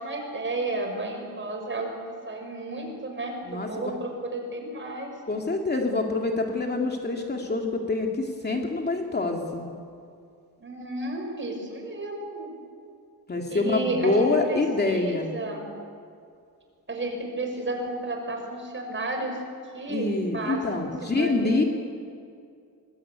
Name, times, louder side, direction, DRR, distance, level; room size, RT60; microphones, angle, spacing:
voice 1, 0.0-1.9 2.3-5.1 10.6-12.5 13.5-15.7 16.9-19.4 19.7-20.1 20.3-21.7, right 2 dB, 30° right, 2 dB, 6.2 m, -32 dB
voice 2, 3.4-3.9 5.3-9.6 13.3-15.3 19.9-21.6, left 3 dB, 25° left, 1 dB, 2.5 m, -26 dB
24.0 x 21.5 x 9.6 m, 2.4 s
cardioid pair, 120°, 38 cm